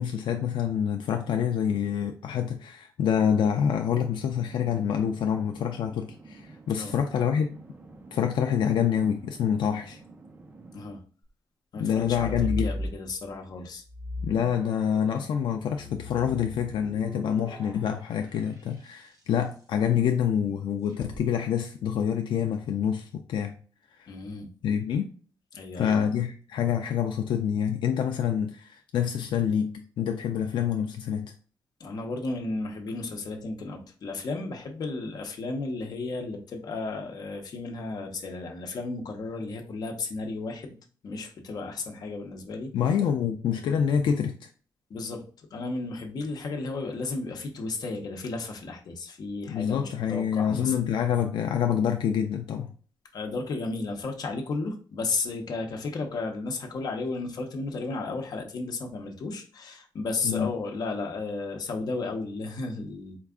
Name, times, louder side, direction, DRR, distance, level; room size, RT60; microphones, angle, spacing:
voice 1, 0.0-7.5 8.1-10.0 11.8-12.7 14.2-23.5 24.0-24.1 24.6-25.1 25.8-31.3 42.7-44.5 49.5-52.7 60.2-60.5, left 8 dB, 85° left, 0.4 m, -27 dB
sound 1, 3.4-10.9, right 3 dB, 25° right, 0.6 m, -50 dB
voice 2, 11.7-13.8 17.7-17.8 24.1-24.5 25.5-26.0 31.8-40.7 41.0-42.7 44.9-45.2 45.5-50.8 53.1-63.2, left 3 dB, 55° left, 0.8 m, -34 dB
sound 2, 12.0-13.4 13.8-19.4 20.9-21.2, left 1 dB, 45° right, 1.6 m, -37 dB
4.5 x 2.4 x 3.5 m
wide cardioid pair, 170°, 8 cm